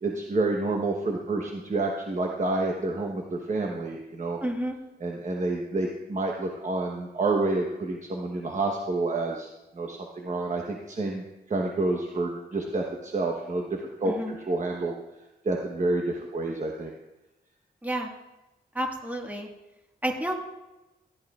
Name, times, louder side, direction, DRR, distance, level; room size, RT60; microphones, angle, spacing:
voice 1, 0.0-4.4 5.0-9.5 9.7-14.9 15.4-16.9, right 2 dB, 45° right, 1 dB, 1.1 m, -29 dB
voice 2, 4.4-4.8 14.1-14.3 17.8-18.1 18.7-19.5 20.0-20.3, right 1 dB, 10° right, 1 dB, 1.7 m, -30 dB
16.0 x 11.0 x 2.4 m, 0.99 s
wide cardioid pair, 105°, 18 cm